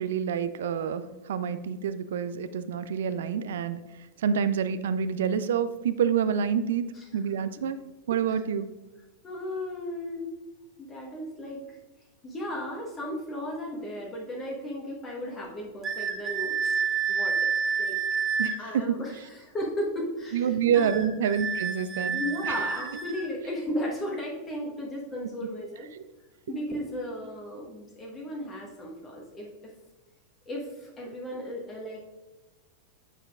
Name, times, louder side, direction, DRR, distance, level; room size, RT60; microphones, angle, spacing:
voice 1, 0.0-3.8 4.2-6.9 7.1-7.8 8.1-8.7 18.4-19.0 20.3-22.6 25.9-26.0, right 7 dB, 60° right, 13 dB, 0.3 m, -27 dB
voice 2, 9.2-10.3 10.8-11.8 12.2-16.7 17.1-17.5 17.8-18.0 18.6-20.9 22.1-25.9 26.5-29.5 30.5-32.1, left 1 dB, 25° left, -2 dB, 1.3 m, -35 dB
sound 1, 15.8-18.6 20.7-23.3, right 6 dB, 20° right, 1.3 m, -29 dB
9.0 x 6.1 x 2.4 m, 1.2 s
figure-of-eight pair, 90°, 0 cm